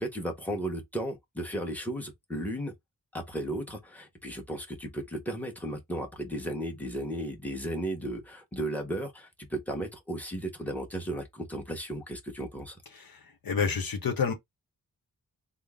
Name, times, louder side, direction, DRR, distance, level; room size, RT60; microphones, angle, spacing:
voice 1, 0.0-2.7 3.1-12.8, right 1 dB, 5° left, 1.1 m, -35 dB
voice 2, 13.0-14.3, left 6 dB, 65° left, 0.9 m, -29 dB
3.6 x 2.0 x 3.6 m
cardioid pair, 60°, 38 cm